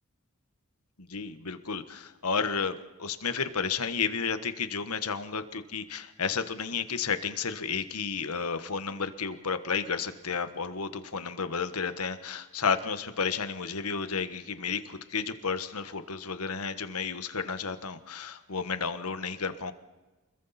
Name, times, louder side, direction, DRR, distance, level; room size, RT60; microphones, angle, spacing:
voice 1, 1.0-19.7, left 5 dB, 85° left, 10 dB, 1.4 m, -32 dB
29.5 x 21.5 x 4.3 m, 1.2 s
head